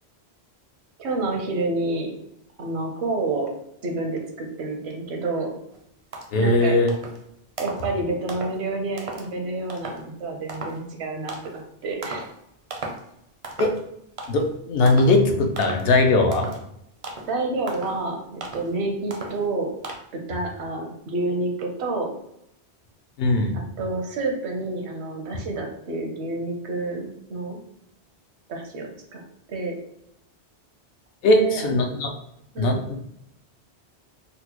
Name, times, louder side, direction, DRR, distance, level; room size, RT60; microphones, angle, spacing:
voice 1, 1.0-2.1 2.6-3.5 3.8-5.5 6.4-6.8 7.6-12.3 17.3-19.7 20.1-22.1 23.5-27.6 28.5-29.2 29.5-29.7 31.3-31.7 32.5-32.8, right 2 dB, 80° right, 2 dB, 1.0 m, -29 dB
sound 1, 5.7-5.8 6.1-6.5 6.9-7.2 7.6-7.9 8.3-8.6 9.0-9.3 9.7-10.0 10.5-10.8 11.3-11.6 12.0-12.3 12.7-13.1 13.4-13.8 14.2-14.5 14.9-15.2 15.6-15.9 16.3-16.6 17.0-17.3 17.7-18.0 18.4-18.7 19.1-19.4 19.8-20.0, right 2 dB, 45° right, 0.4 m, -36 dB
voice 2, 6.3-6.9 13.6-13.7 14.3-16.5 23.2-23.6 31.2-32.1 32.6-33.1, left 2 dB, 65° left, 4 dB, 0.7 m, -20 dB
4.0 x 2.1 x 2.9 m, 0.77 s
omnidirectional pair, 1.1 m